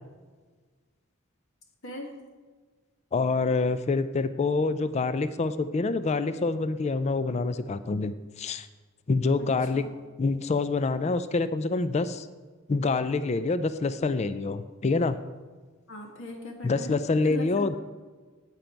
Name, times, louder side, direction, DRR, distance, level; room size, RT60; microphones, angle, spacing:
voice 1, 3.1-8.7 9.1-9.9 10.2-12.3 12.7-15.2 16.6-17.8, left 3 dB, 30° left, 12 dB, 0.4 m, -26 dB
voice 2, 9.4-9.9 15.9-17.0 17.2-17.8, left 2 dB, 60° left, 1 dB, 1.8 m, -39 dB
9.1 x 9.0 x 4.5 m, 1.4 s
head